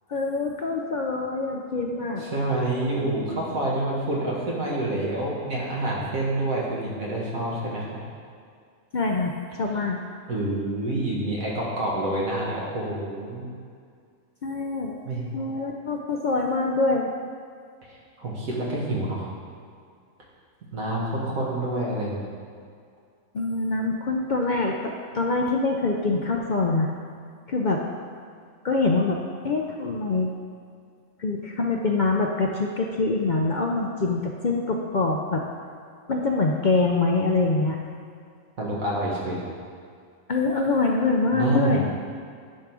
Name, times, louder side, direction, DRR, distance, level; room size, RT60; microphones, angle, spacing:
voice 1, 0.1-2.3 8.9-10.0 14.4-15.0 15.3-17.1 23.3-26.9 27.5-27.8 28.6-29.2 29.4-30.3 31.2-35.4 36.1-37.8 40.3-41.9, left 3 dB, 60° left, 0 dB, 0.5 m, -24 dB
voice 2, 2.2-7.9 10.3-13.5 15.0-15.3 18.2-19.3 20.7-22.3 38.6-39.4 41.3-41.8, right 1 dB, 75° right, -5 dB, 2.1 m, -27 dB
10.0 x 3.7 x 6.1 m, 2.2 s
omnidirectional pair, 1.5 m